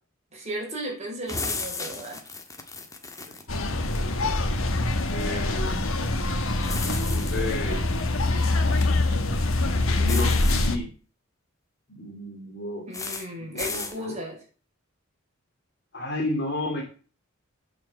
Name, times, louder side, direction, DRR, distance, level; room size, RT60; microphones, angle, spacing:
voice 1, 0.3-2.2 12.9-14.4, right 1 dB, 35° right, -2 dB, 5.3 m, -35 dB
sound 1, 1.3-3.4 6.6-7.5 10.1-10.7 12.9-13.3 13.6-14.0, left 4 dB, 15° left, 1.5 m, -34 dB
sound 2, 3.5-10.8, left 2 dB, 90° left, 1.5 m, -24 dB
voice 2, 5.1-5.9 7.1-7.9 8.7-9.0 9.8-10.9 11.9-12.9 13.4-14.2 15.9-16.8, left 2 dB, 55° left, 0 dB, 2.9 m, -32 dB
8.8 x 7.0 x 7.5 m, 0.39 s
head